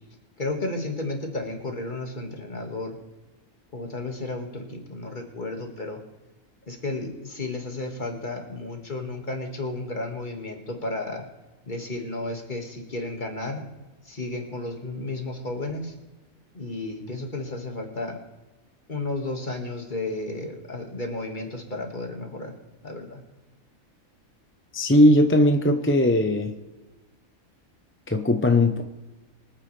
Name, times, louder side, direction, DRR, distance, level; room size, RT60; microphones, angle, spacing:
voice 1, 0.4-3.0 3.7-6.0 6.7-11.3 11.7-13.6 14.1-16.0 16.5-18.2 18.9-22.5 22.8-23.2, left 2 dB, 35° left, 2 dB, 2.1 m, -33 dB
voice 2, 24.7-26.5 28.1-28.8, left 1 dB, 10° left, 6 dB, 0.6 m, -19 dB
25.0 x 9.2 x 3.4 m, 1.1 s
omnidirectional pair, 1.5 m